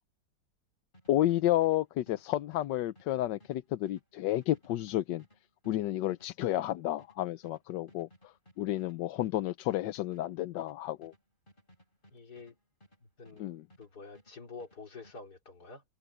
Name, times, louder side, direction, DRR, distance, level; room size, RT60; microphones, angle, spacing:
sound 1, 0.9-13.9 14.1-15.2, equal, 25° left, 7.8 m, -62 dB
voice 1, 1.1-5.2 5.7-11.1 13.4-13.6, left 14 dB, 80° left, 1.3 m, -31 dB
voice 2, 12.1-12.6 13.0-13.5 13.8-15.8, left 4 dB, 60° left, 3.7 m, -48 dB
omnidirectional pair, 2.0 m